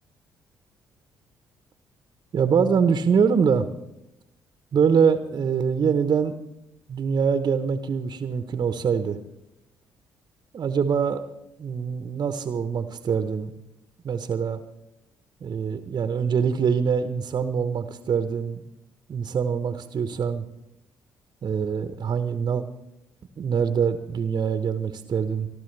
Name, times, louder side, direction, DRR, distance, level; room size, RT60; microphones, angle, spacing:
voice 1, 2.3-3.7 4.7-6.3 6.9-9.2 10.5-11.2 11.6-13.5 14.0-14.6 15.4-18.6 19.1-20.4 21.4-22.6 23.4-25.5, right 6 dB, 45° right, 9 dB, 1.1 m, -24 dB
25.5 x 12.0 x 3.4 m, 0.87 s
hypercardioid pair, 45°, 9 cm